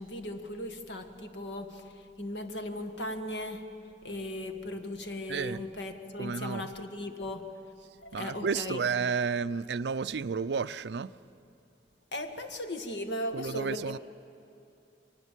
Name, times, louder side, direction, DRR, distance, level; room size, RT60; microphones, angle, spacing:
voice 1, 0.0-3.7 4.0-7.5 8.0-8.8 12.1-14.0, left 1 dB, 85° left, 1.7 m, -37 dB
voice 2, 5.3-5.6 6.2-6.7 8.1-11.1 13.3-14.0, right 5 dB, 70° right, 0.5 m, -31 dB
24.5 x 19.0 x 7.5 m
head